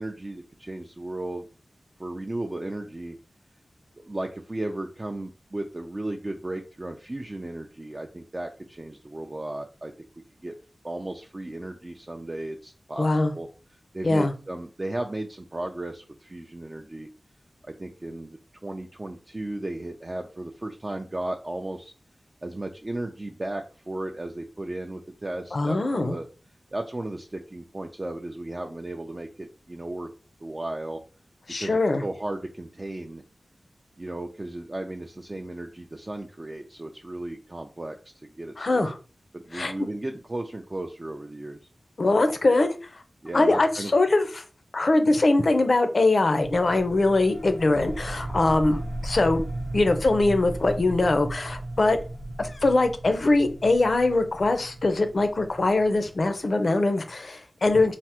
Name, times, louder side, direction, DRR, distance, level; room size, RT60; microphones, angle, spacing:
voice 1, 0.0-1.5 2.0-3.2 4.0-9.9 10.4-10.5 10.8-13.5 13.9-17.1 17.6-21.9 22.4-26.3 26.7-30.1 30.4-31.0 31.6-33.2 34.0-38.0 38.2-38.9 39.3-41.6 43.2-43.9, right 1 dB, 35° right, 2 dB, 0.3 m, -35 dB
voice 2, 13.0-13.3 14.0-14.3 25.5-26.2 31.5-32.0 38.6-38.9 39.5-39.7 42.0-42.7 43.3-44.4 44.7-52.0 52.4-57.9, left 2 dB, 60° left, 8 dB, 0.5 m, -22 dB
sound 1, 46.4-56.6, right 1 dB, 90° right, 0.5 m, -36 dB
3.3 x 2.0 x 2.8 m, 0.35 s
wide cardioid pair, 65°, 0 cm